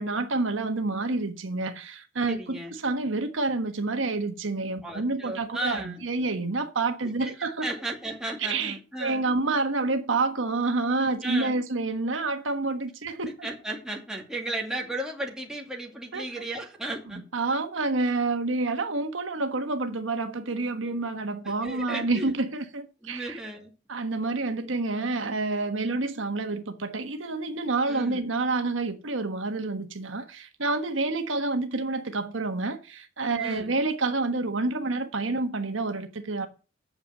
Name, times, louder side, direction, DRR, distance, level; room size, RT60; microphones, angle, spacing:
voice 1, 0.0-7.6 8.4-8.7 9.0-13.3 16.1-16.4 17.3-23.4 23.9-36.5, right 3 dB, 80° right, 1.3 m, -28 dB
voice 2, 2.3-2.7 4.8-6.1 7.2-7.3 7.6-9.3 11.2-11.6 13.4-17.2 20.8-21.1 21.6-22.3 23.0-23.7 27.9-28.2 33.4-33.7, right 2 dB, 5° right, 2.4 m, -35 dB
8.8 x 7.0 x 7.6 m
head